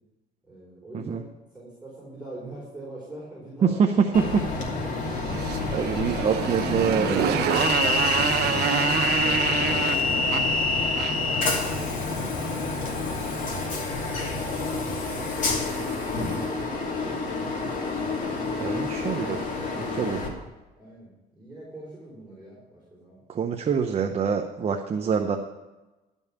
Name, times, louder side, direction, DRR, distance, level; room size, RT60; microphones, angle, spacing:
voice 1, 0.5-1.3 1.5-4.4 11.4-11.9 14.1-15.2 15.8-17.5 20.8-23.2, right 1 dB, 5° right, -6 dB, 4.6 m, -44 dB
voice 2, 3.6-4.4 5.7-7.4 18.6-19.4 19.7-20.2 23.3-25.4, right 6 dB, 40° right, 5 dB, 0.8 m, -25 dB
Train, 4.1-20.3, left 3 dB, 50° left, 2.8 m, -28 dB
sound 1, 4.5-13.1, left 8 dB, 85° left, 0.6 m, -39 dB
Motorcycle, 5.0-11.4, right 8 dB, 75° right, 1.0 m, -27 dB
12.0 x 5.5 x 8.4 m, 1.1 s
cardioid pair, 110°, 17 cm